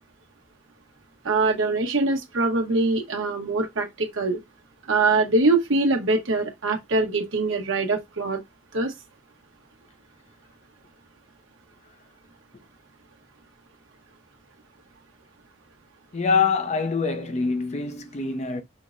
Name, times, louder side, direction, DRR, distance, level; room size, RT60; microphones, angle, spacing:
voice 1, 1.2-4.4 4.9-8.4 8.7-8.9, right 3 dB, 85° right, 0.9 m, -23 dB
voice 2, 16.1-18.6, left 5 dB, 35° left, 0.5 m, -24 dB
5.6 x 2.1 x 2.4 m
head